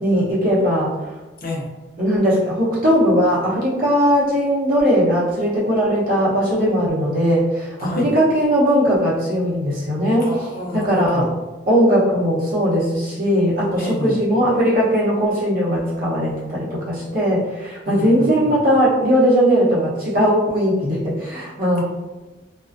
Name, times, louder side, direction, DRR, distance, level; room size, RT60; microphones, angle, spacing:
voice 1, 0.0-0.9 2.0-10.3 10.7-11.3 11.7-21.8, equal, 50° right, -7 dB, 0.7 m, -19 dB
voice 2, 1.4-1.7 7.8-8.1 10.2-11.3 13.7-14.3 17.9-18.6 21.8-21.9, left 1 dB, 50° left, -2 dB, 0.5 m, -29 dB
2.4 x 2.1 x 2.4 m, 1.1 s
head